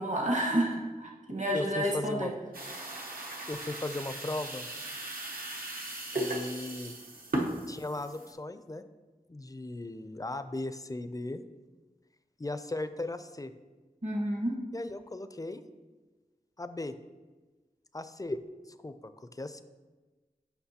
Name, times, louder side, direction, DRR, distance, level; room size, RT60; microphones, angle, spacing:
voice 1, 0.0-2.3 14.0-14.6, right 1 dB, 55° right, -1 dB, 1.3 m, -30 dB
voice 2, 1.5-2.3 3.5-4.7 6.2-6.9 7.7-8.8 9.3-11.4 12.4-13.5 14.7-15.6 16.6-16.9 17.9-18.4 18.7-19.6, left 2 dB, 25° left, 11 dB, 0.4 m, -37 dB
sound 1, 2.5-8.3, right 1 dB, 75° right, 0.9 m, -37 dB
8.0 x 5.6 x 2.8 m, 1.3 s
wide cardioid pair, 55°, 15 cm